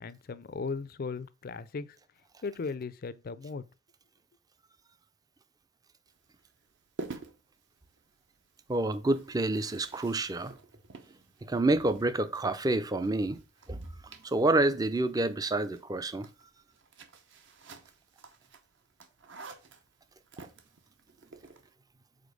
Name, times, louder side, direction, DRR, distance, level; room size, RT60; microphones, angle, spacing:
voice 1, 0.0-2.0 2.4-3.6, left 4 dB, 45° left, 0.4 m, -37 dB
sound 1, 6.1-21.7, right 3 dB, 55° right, 0.8 m, -50 dB
voice 2, 8.7-10.6 11.4-13.4 13.7-13.8 14.2-16.3, right 2 dB, 15° right, 0.4 m, -28 dB
5.1 x 4.2 x 5.2 m
head